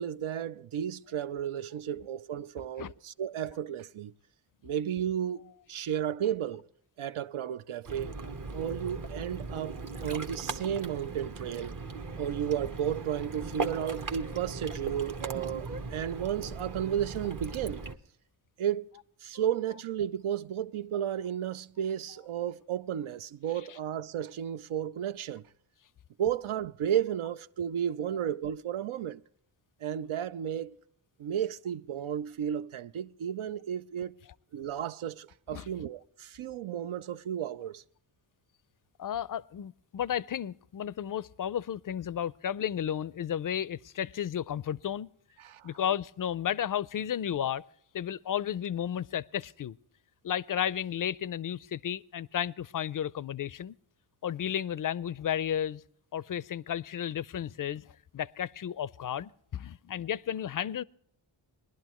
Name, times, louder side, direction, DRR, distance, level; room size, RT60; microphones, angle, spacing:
voice 1, 0.0-4.1 4.6-6.7 7.0-8.2 8.5-11.8 12.2-17.8 18.6-18.9 19.2-25.4 26.2-29.2 29.8-30.8 31.2-34.1 34.5-37.8 45.4-45.7, right 9 dB, 80° right, 0.6 m, -33 dB
Ocean, 7.9-18.0, right 3 dB, 40° right, 0.9 m, -38 dB
voice 2, 39.0-45.1 45.6-47.6 47.9-49.8 50.2-53.8 54.2-55.8 56.1-60.8, left 9 dB, 45° left, 0.4 m, -33 dB
20.5 x 11.5 x 3.0 m
wide cardioid pair, 70°, 49 cm